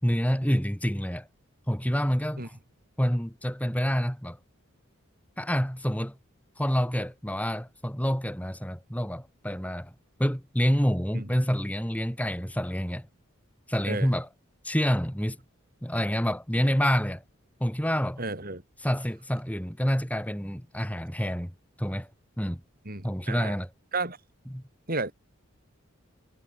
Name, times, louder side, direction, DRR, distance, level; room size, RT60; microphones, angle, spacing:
voice 1, 0.0-1.3 1.7-2.6 3.0-4.4 5.4-6.2 6.6-9.9 10.2-13.1 13.7-14.3 14.6-15.4 15.8-17.2 17.6-18.2 18.8-21.5 21.8-22.1 22.4-22.6 23.0-23.7 24.5-24.6, equal, 5° left, 6.4 m, -27 dB
voice 2, 18.2-18.6 22.9-23.6 23.9-24.2 24.9-25.1, right 3 dB, 45° right, 7.4 m, -32 dB
head